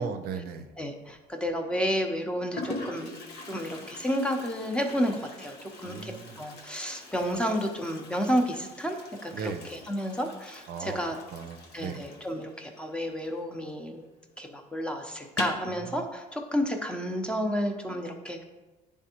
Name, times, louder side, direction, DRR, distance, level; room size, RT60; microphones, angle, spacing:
voice 1, 0.0-0.7 5.8-6.4 9.3-9.7 10.7-11.0 11.3-12.0 15.7-15.8, right 6 dB, 65° right, 8 dB, 0.5 m, -36 dB
voice 2, 0.8-11.2 11.7-14.0 14.4-18.4, equal, 5° left, 3 dB, 0.6 m, -31 dB
Toilet flush, 1.0-1.5 2.2-2.3 2.5-13.8 14.1-14.2 14.5-14.6 15.2-15.7, left 2 dB, 75° left, 0.8 m, -43 dB
9.5 x 3.5 x 2.9 m, 1.1 s
cardioid pair, 110°, 17 cm